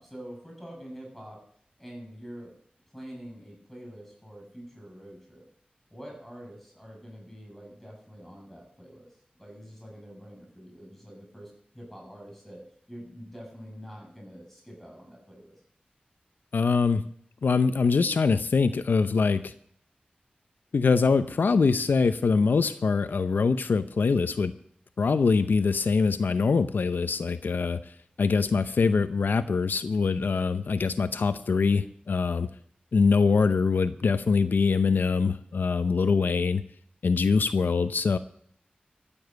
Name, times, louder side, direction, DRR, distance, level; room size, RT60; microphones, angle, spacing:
voice 1, 0.0-1.4 1.8-2.5 2.9-5.5 5.9-9.1 9.4-12.6 12.9-15.5, equal, 5° left, 0 dB, 7.8 m, -45 dB
voice 2, 16.5-17.0 17.4-19.5 20.7-24.5 25.0-27.8 28.2-32.5 32.9-36.6 37.0-38.2, left 4 dB, 90° left, 11 dB, 0.7 m, -23 dB
14.5 x 7.1 x 8.0 m, 0.63 s
wide cardioid pair, 75°, 3 cm